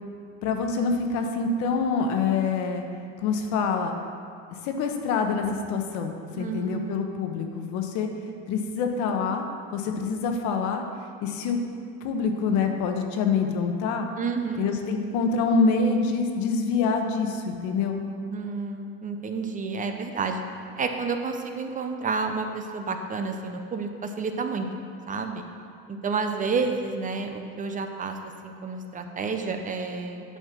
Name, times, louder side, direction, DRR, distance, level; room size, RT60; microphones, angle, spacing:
voice 1, 0.4-2.9 3.2-3.9 4.5-8.1 8.5-9.5 9.7-10.8 11.2-11.6 12.0-14.1 14.6-18.0, left 5 dB, 75° left, 4 dB, 1.0 m, -26 dB
voice 2, 6.4-7.1 14.2-14.7 18.3-20.4 20.8-24.7 25.1-25.4 25.9-28.2 28.4-30.4, right 4 dB, 25° right, 5 dB, 0.6 m, -30 dB
9.1 x 4.5 x 5.9 m, 2.3 s
cardioid pair, 130°, 30 cm